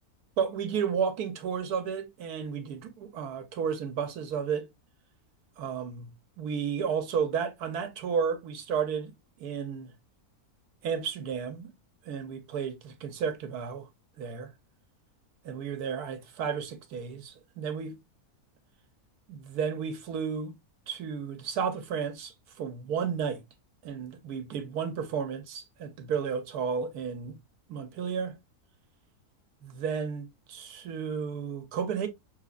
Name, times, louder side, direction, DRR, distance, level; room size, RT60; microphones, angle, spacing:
voice 1, 0.4-4.7 5.6-6.1 6.4-9.1 9.4-9.9 10.8-11.7 12.0-13.9 14.2-14.5 15.4-17.9 19.3-20.6 20.9-23.4 23.8-27.4 27.7-28.4 29.6-32.1, right 6 dB, 85° right, 1.3 m, -32 dB
5.0 x 3.4 x 2.3 m
omnidirectional pair, 1.6 m